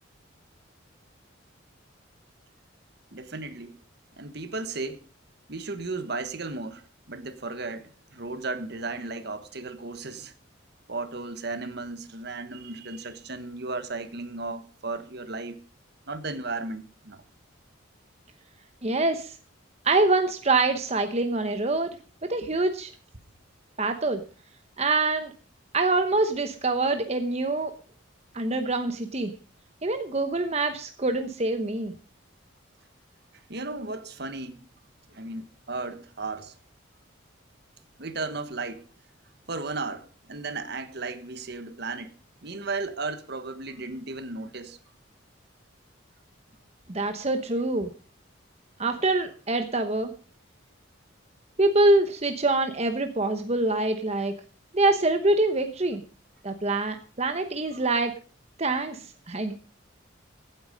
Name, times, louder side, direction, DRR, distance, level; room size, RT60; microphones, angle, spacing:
voice 1, 3.1-3.8 4.2-5.0 5.5-6.8 7.1-10.3 10.9-15.6 16.1-17.2 22.4-22.5 33.5-34.6 35.1-36.5 38.0-38.9 39.5-42.1 42.4-44.8 57.7-57.8, right 3 dB, 55° right, 1.3 m, -35 dB
voice 2, 18.8-19.4 19.8-22.0 22.2-22.9 23.8-24.2 24.8-25.3 25.7-27.7 28.3-29.3 29.8-31.9 46.9-47.9 48.8-50.1 51.6-54.3 54.7-56.0 56.4-58.1 58.6-59.5, right 2 dB, 30° right, 1.0 m, -25 dB
16.0 x 9.2 x 5.1 m
head